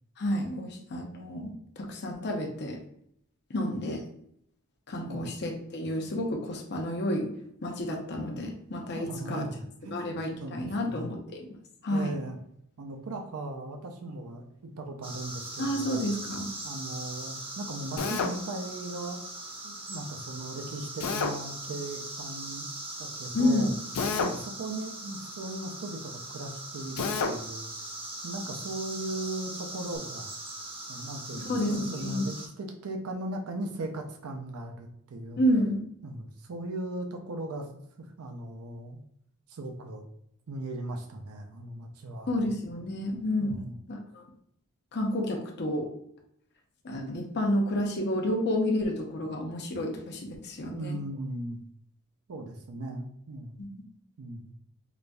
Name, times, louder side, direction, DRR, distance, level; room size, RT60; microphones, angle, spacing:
voice 1, 0.2-2.8 3.5-4.0 4.9-7.3 7.6-9.4 9.9-11.5 11.8-12.1 15.6-16.5 23.3-23.7 31.4-32.2 35.4-35.9 42.3-43.6 43.9-44.2 44.9-45.9 46.8-51.0 53.6-53.7, left 1 dB, 50° left, 2 dB, 0.7 m, -30 dB
voice 2, 8.9-10.1 10.4-11.1 11.9-12.4 12.8-16.1 16.6-19.2 19.6-22.7 23.0-23.7 24.2-27.9 28.2-30.3 30.9-35.4 36.0-37.7 38.0-39.0 39.5-40.1 40.5-42.3 43.4-43.8 50.7-51.6 52.3-53.6 54.2-54.5, right 2 dB, 70° right, 4 dB, 0.5 m, -38 dB
sound 1, 15.0-32.5, right 2 dB, 25° right, 0.7 m, -40 dB
Drill, 18.0-18.4 21.0-21.4 23.9-24.4 27.0-27.4, left 4 dB, 85° left, 0.4 m, -29 dB
5.0 x 2.6 x 2.2 m, 0.72 s
head